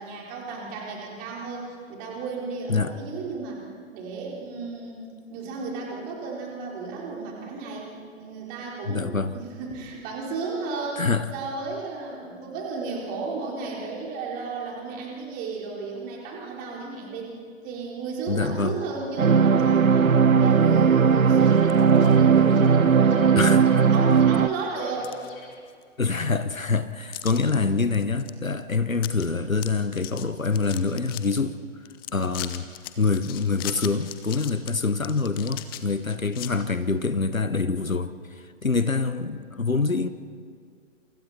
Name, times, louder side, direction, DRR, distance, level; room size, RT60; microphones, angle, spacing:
voice 1, 0.0-3.6 3.9-5.0 5.3-7.9 8.2-11.1 11.3-17.3 17.6-23.4 23.9-25.2, right 4 dB, 20° right, -2 dB, 4.2 m, -34 dB
voice 2, 8.9-9.3 11.0-11.3 18.3-18.7 23.3-23.9 26.0-31.6 32.1-32.7 33.0-40.1, left 4 dB, 85° left, 13 dB, 1.2 m, -25 dB
sound 1, 19.2-24.5, right 6 dB, 90° right, 0.6 m, -18 dB
sound 2, 21.2-25.6, left 5 dB, 40° left, 4.4 m, -47 dB
sound 3, 21.6-22.2 22.6-22.7 23.4-23.5 23.9-24.4 24.8-25.8 26.1-26.2 27.1-27.5 27.9-28.3 28.6-28.7 28.9-29.3 29.5-31.4 31.8-36.5, left 14 dB, 15° left, 0.7 m, -39 dB
28.5 x 27.5 x 4.3 m, 2.1 s
figure-of-eight pair, 125°, 39 cm